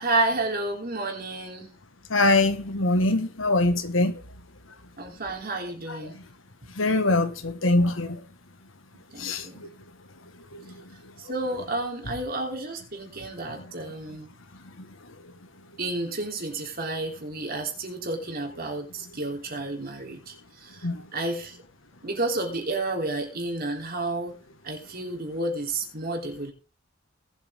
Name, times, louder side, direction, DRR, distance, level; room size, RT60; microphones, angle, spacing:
voice 1, 0.0-1.7 5.0-6.2 9.1-9.7 11.2-14.3 15.8-21.6 22.0-26.5, right 2 dB, 50° right, 3.5 m, -31 dB
voice 2, 2.1-4.1 6.8-8.2 9.2-9.7 10.5-10.7 14.8-14.9 20.8-21.0, left 2 dB, 85° left, 1.7 m, -23 dB
19.0 x 8.1 x 3.7 m
head